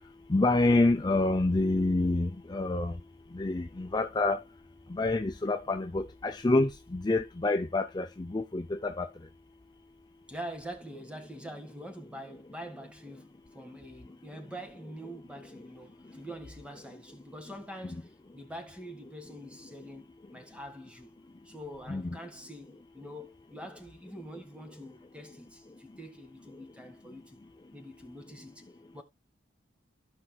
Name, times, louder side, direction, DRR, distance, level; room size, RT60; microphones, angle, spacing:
voice 1, 0.3-2.9 3.3-4.4 4.9-9.1 21.9-22.2, left 2 dB, 20° left, 0.5 m, -27 dB
voice 2, 10.3-21.2 21.4-27.4 27.7-28.7 28.9-29.0, equal, 5° right, 1.5 m, -45 dB
14.5 x 5.4 x 2.3 m
head